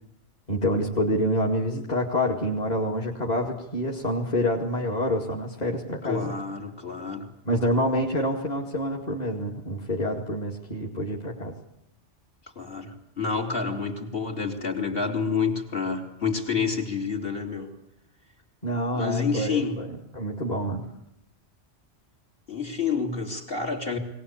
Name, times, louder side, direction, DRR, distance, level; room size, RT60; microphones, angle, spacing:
voice 1, 0.5-6.3 7.5-11.5 18.6-19.9 20.1-20.9, equal, 35° left, -2 dB, 2.4 m, -27 dB
voice 2, 6.0-7.3 12.6-17.7 18.9-19.9 22.5-24.0, left 5 dB, 55° left, 4 dB, 3.7 m, -28 dB
22.0 x 19.0 x 8.5 m, 0.79 s
omnidirectional pair, 1.2 m